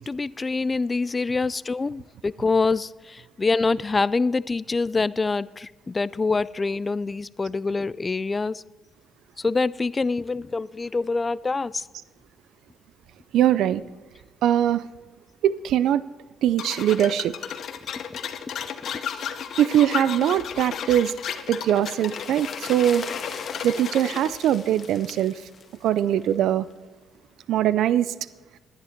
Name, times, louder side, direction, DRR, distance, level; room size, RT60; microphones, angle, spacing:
voice 1, 0.0-8.6 9.4-11.8 18.1-18.2, left 3 dB, 25° left, 20 dB, 0.3 m, -25 dB
voice 2, 13.3-13.8 14.4-14.9 15.4-16.0 16.4-17.3 19.6-21.1 21.5-23.1 23.6-25.4 25.8-26.7 27.5-28.1, right 11 dB, 80° right, 16 dB, 0.4 m, -21 dB
sound 1, 16.6-24.3, left 8 dB, 65° left, 0.8 m, -33 dB
sound 2, 21.0-26.4 26.7-26.8, left 5 dB, 50° left, 1.5 m, -40 dB
11.0 x 10.5 x 4.4 m, 1.3 s
cardioid pair, 90°, 0 cm